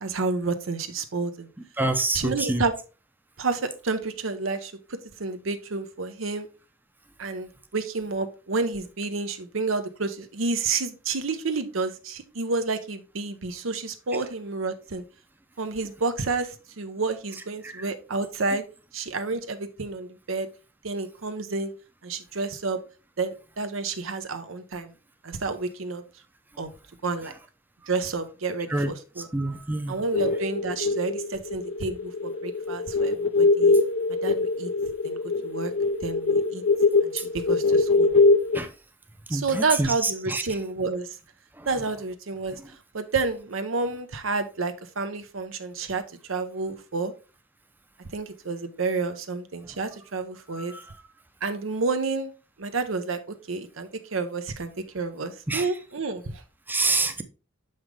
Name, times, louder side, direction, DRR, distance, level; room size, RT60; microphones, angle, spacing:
voice 1, 0.0-1.5 2.1-2.7 3.4-6.5 7.2-15.0 15.6-18.6 18.9-20.5 20.8-21.7 22.0-22.8 23.2-24.9 25.2-26.0 26.6-26.7 27.0-27.3 27.9-29.3 29.9-33.7 34.2-34.7 35.0-35.7 36.0-36.6 37.0-38.1 39.3-41.1 41.7-42.6 42.9-46.0 46.3-47.1 48.1-50.7 51.4-52.3 52.6-53.2 53.5-56.4, right 3 dB, 85° right, 0.8 m, -30 dB
voice 2, 1.8-2.6 17.6-17.7 28.7-28.9 29.2-30.0 38.5-38.7 39.3-40.4 41.6-41.7 50.5-50.8 55.5-55.7 56.7-57.2, right 2 dB, 10° right, 0.6 m, -27 dB
sound 1, 30.0-38.6, left 3 dB, 80° left, 0.5 m, -23 dB
6.3 x 5.6 x 3.3 m
head